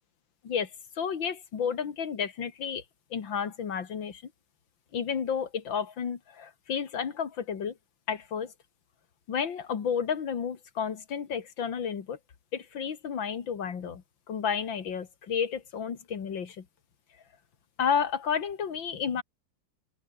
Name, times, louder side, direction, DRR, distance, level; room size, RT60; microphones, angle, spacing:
voice 1, 0.4-2.8 3.1-4.3 4.9-7.8 8.1-8.5 9.3-12.2 12.5-16.6 17.8-19.2, left 7 dB, 85° left, 2.7 m, -31 dB
omnidirectional pair, 2.0 m